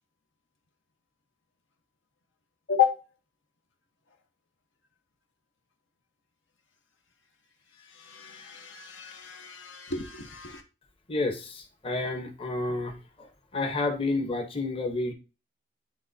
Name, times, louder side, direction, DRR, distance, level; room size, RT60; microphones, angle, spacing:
voice 1, 8.0-10.6, left 8 dB, 75° left, 1.1 m, -30 dB
voice 2, 11.1-15.1, left 2 dB, 30° left, 1.0 m, -30 dB
10.0 x 3.6 x 2.7 m
head